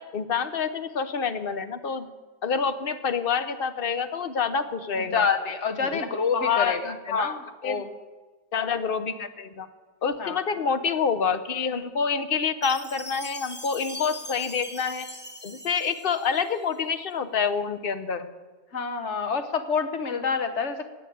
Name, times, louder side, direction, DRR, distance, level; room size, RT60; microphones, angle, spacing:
voice 1, 0.0-2.1 2.4-5.3 5.8-6.1 6.3-7.8 8.5-9.7 10.0-15.1 15.4-18.3, left 6 dB, 50° left, 10 dB, 1.1 m, -27 dB
voice 2, 5.0-7.3 7.6-7.9 10.2-10.4 18.7-20.9, left 5 dB, 75° left, 8 dB, 1.5 m, -27 dB
Chime, 12.6-16.7, left 1 dB, 10° left, 1.0 m, -41 dB
17.0 x 7.7 x 9.3 m, 1.2 s
omnidirectional pair, 1.2 m